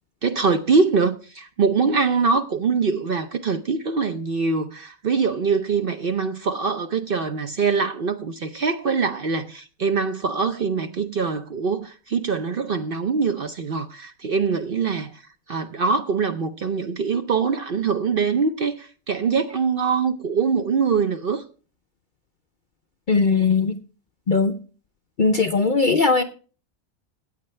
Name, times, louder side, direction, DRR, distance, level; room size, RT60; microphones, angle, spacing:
voice 1, 0.2-15.2 15.5-21.4, right 5 dB, 50° right, 0.7 m, -23 dB
voice 2, 23.1-23.8 24.3-24.5 25.2-26.2, left 4 dB, 50° left, 0.6 m, -19 dB
14.5 x 8.8 x 3.2 m
omnidirectional pair, 1.5 m